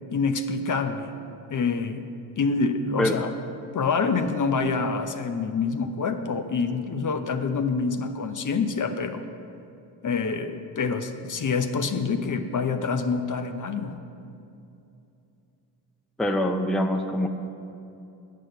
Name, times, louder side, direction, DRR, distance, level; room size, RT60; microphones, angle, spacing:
voice 1, 0.1-1.1 1.5-2.1 2.4-3.3 3.7-9.2 10.0-14.0, left 4 dB, 40° left, 8 dB, 0.8 m, -26 dB
voice 2, 16.2-17.3, left 1 dB, ahead, 5 dB, 0.6 m, -24 dB
8.5 x 6.3 x 7.7 m, 2.7 s
supercardioid pair, 65°, 46 cm